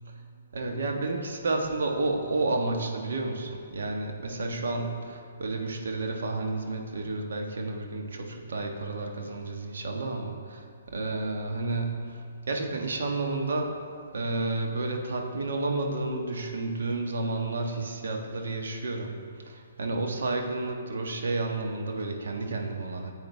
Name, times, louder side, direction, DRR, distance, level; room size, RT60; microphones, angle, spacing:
voice 1, 0.5-13.8 14.1-23.1, right 2 dB, 60° right, 2 dB, 1.4 m, -31 dB
14.5 x 8.0 x 3.4 m, 2.2 s
figure-of-eight pair, 130°, 0 cm